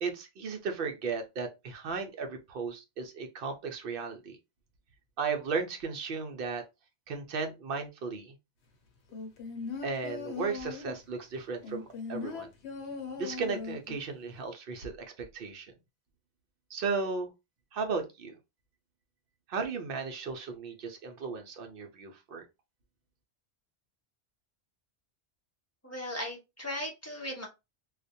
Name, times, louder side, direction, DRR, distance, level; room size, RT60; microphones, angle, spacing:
voice 1, 0.0-4.4 5.2-6.6 7.1-8.4 9.8-12.5 13.2-15.7 16.7-17.3 17.7-18.4 19.5-22.4, right 4 dB, 60° right, 0.8 m, -35 dB
sound 1, 9.1-11.0 11.6-14.0 14.4-14.5, left 5 dB, 80° left, 0.9 m, -39 dB
voice 2, 25.8-27.5, left 1 dB, 20° left, 0.5 m, -37 dB
2.4 x 2.1 x 2.5 m
omnidirectional pair, 1.1 m